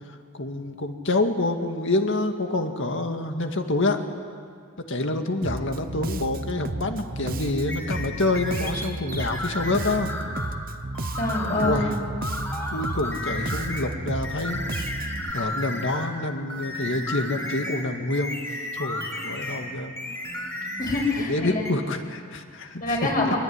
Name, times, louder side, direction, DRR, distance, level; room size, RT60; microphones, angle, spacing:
voice 1, 0.0-4.0 4.9-10.1 11.6-11.9 12.7-14.6 15.3-18.4 18.7-19.9 21.2-23.0 23.3-23.4, left 2 dB, 55° left, 5 dB, 2.1 m, -27 dB
Bass guitar, 5.4-15.3, right 2 dB, 40° right, 0.9 m, -33 dB
sound 1, 7.7-10.6 10.9-11.8 12.2-13.9 14.2-16.1 16.5-19.7 20.0-21.3 21.6-21.7, left 1 dB, 15° left, 4.6 m, -33 dB
voice 2, 11.2-11.8 20.8-21.7 22.8-23.4, left 2 dB, 40° left, -2 dB, 7.7 m, -25 dB
24.5 x 23.5 x 9.8 m, 2.1 s
head